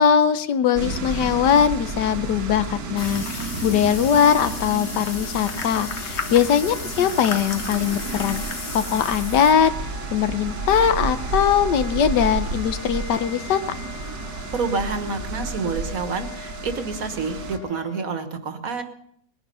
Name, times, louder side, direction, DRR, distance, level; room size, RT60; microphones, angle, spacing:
voice 1, 0.0-8.4 8.7-9.7 10.1-13.6, left 8 dB, 80° left, 12 dB, 1.5 m, -20 dB
sound 1, 0.7-17.6, right 4 dB, 85° right, 2.0 m, -32 dB
sound 2, 3.0-9.5, left 5 dB, 45° left, 1.3 m, -34 dB
sound 3, 3.5-18.0, left 4 dB, 15° left, 1.5 m, -43 dB
voice 2, 14.5-18.8, right 4 dB, 55° right, 8 dB, 1.7 m, -28 dB
20.0 x 10.5 x 5.5 m, 0.69 s
omnidirectional pair, 1.8 m